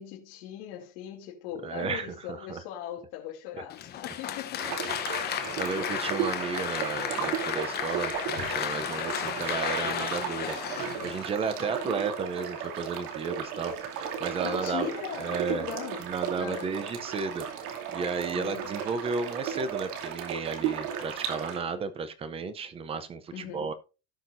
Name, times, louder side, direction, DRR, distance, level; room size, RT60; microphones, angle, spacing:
voice 1, 0.0-4.9 8.7-9.0 11.6-12.0 14.4-16.0 16.4-16.7 18.3-18.7 23.3-23.7, left 11 dB, 55° left, 2.7 m, -39 dB
voice 2, 1.6-2.1 2.5-2.6 5.2-10.6 11.0-14.9 15.2-15.6 16.0-23.7, right 5 dB, 15° right, 0.5 m, -33 dB
Applause, 3.7-11.8, left 10 dB, 20° left, 0.8 m, -34 dB
sound 1, 4.6-21.6, right 8 dB, 75° right, 2.7 m, -35 dB
17.0 x 5.8 x 2.6 m
supercardioid pair, 165°, 45 cm